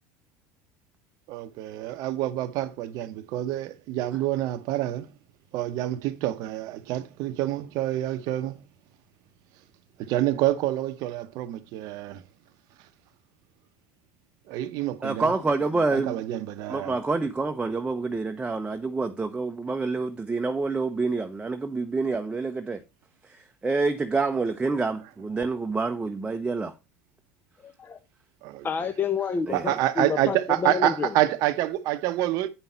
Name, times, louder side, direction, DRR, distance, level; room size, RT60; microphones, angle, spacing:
voice 1, 1.3-5.1 5.5-8.6 10.0-12.2 14.5-15.3 15.9-17.0 28.4-28.7 29.5-32.5, right 14 dB, 65° right, 0.9 m, -27 dB
voice 2, 15.0-16.2 16.7-22.8 23.6-26.7 29.5-29.7, right 3 dB, 15° right, 0.8 m, -27 dB
voice 3, 27.6-28.0 28.6-31.1, left 5 dB, 30° left, 0.9 m, -29 dB
8.8 x 5.6 x 4.3 m
supercardioid pair, 90°, 7 cm